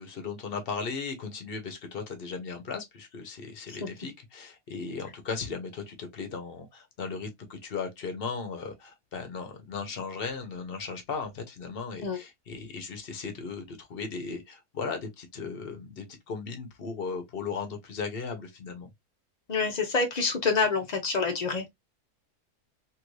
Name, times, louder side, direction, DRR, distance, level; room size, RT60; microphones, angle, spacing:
voice 1, 0.0-18.9, left 5 dB, 45° left, 0.8 m, -37 dB
voice 2, 19.5-21.6, left 4 dB, 90° left, 0.3 m, -27 dB
3.0 x 2.5 x 3.0 m
omnidirectional pair, 1.7 m